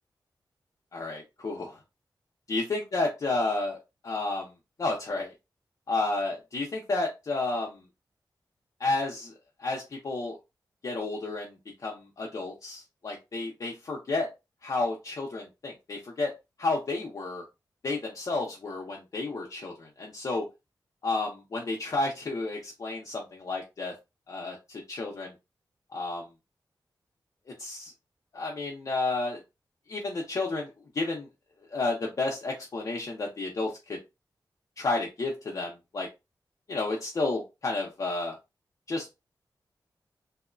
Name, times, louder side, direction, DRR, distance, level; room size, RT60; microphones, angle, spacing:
voice 1, 0.9-1.7 2.5-3.8 4.0-4.5 4.8-5.3 5.9-7.8 8.8-9.3 9.6-10.4 10.8-11.6 11.8-14.3 14.6-16.3 16.6-17.4 17.8-20.4 21.0-23.9 24.3-25.3 25.9-26.3 27.6-27.9 28.3-29.4 29.9-31.3 31.7-34.0 34.8-36.1 36.7-38.4 38.9-39.1, left 3 dB, 45° left, -1 dB, 0.5 m, -31 dB
2.9 x 2.0 x 2.3 m, 0.25 s
wide cardioid pair, 165°, 8 cm